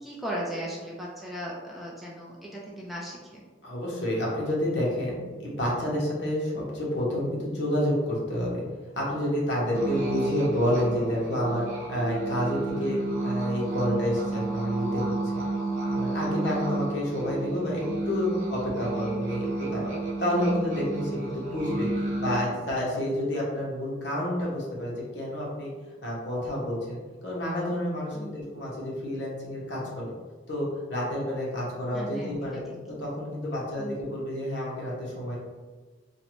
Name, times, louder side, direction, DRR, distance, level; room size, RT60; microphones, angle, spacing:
voice 1, 0.0-3.4 15.5-15.8 21.3-21.5 28.1-28.4 31.9-32.5 33.8-34.0, equal, ahead, -5 dB, 0.3 m, -37 dB
voice 2, 3.6-8.6 8.9-15.4 15.9-19.9 20.2-25.7 26.0-30.1 30.5-35.4, left 1 dB, 75° left, -4 dB, 0.8 m, -29 dB
sound 1, 9.7-22.4, right 2 dB, 45° right, 0.8 m, -31 dB
2.6 x 2.1 x 2.9 m, 1.4 s
head